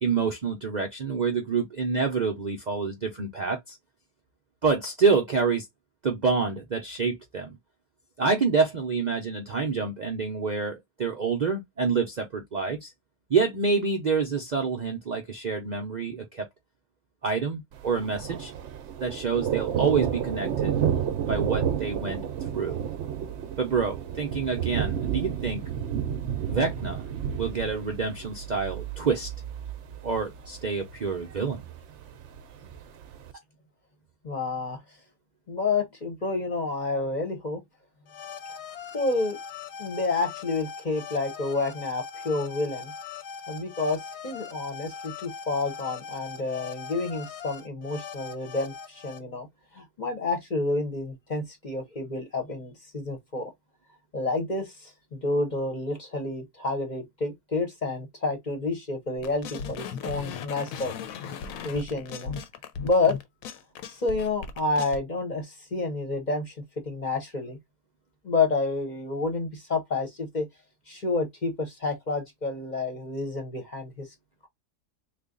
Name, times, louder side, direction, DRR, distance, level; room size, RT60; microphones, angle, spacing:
voice 1, 0.0-3.8 4.6-5.7 6.0-7.6 8.2-12.9 13.3-16.4 17.2-18.5 19.0-20.7 21.3-22.9 23.6-25.6 26.5-27.0 27.4-29.3 30.0-31.6, right 5 dB, 80° right, 0.4 m, -27 dB
Thunder, 17.7-33.3, right 9 dB, 65° right, 0.7 m, -31 dB
voice 2, 34.2-34.8 35.5-37.6 38.9-39.4 39.8-42.9 43.5-49.5 49.7-53.5 54.1-60.9 61.6-62.3 62.8-63.2 63.9-66.5 66.8-67.6 68.2-70.5 70.9-74.1, left 3 dB, 40° left, 0.8 m, -29 dB
sound 1, 38.1-49.2, left 6 dB, 90° left, 1.3 m, -41 dB
sound 2, 59.2-65.0, left 6 dB, 70° left, 1.0 m, -37 dB
3.3 x 2.3 x 3.7 m
omnidirectional pair, 1.6 m